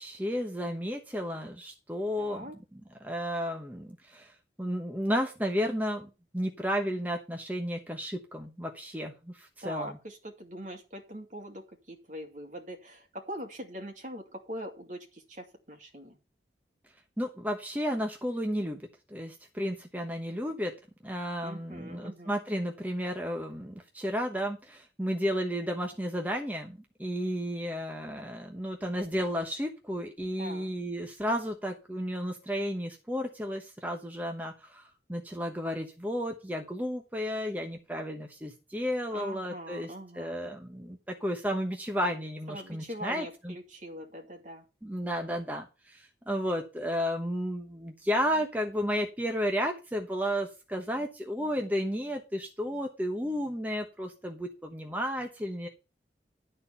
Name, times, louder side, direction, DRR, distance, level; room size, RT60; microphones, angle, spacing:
voice 1, 0.0-2.5 2.7-4.3 4.6-9.9 17.2-18.8 19.1-20.7 21.0-43.5 44.8-55.7, equal, 10° right, 3 dB, 1.0 m, -33 dB
voice 2, 2.2-2.6 9.6-16.2 21.4-22.3 30.4-30.7 39.1-40.5 42.5-44.7, equal, 45° right, 4 dB, 2.4 m, -42 dB
12.0 x 4.4 x 6.8 m, 0.29 s
head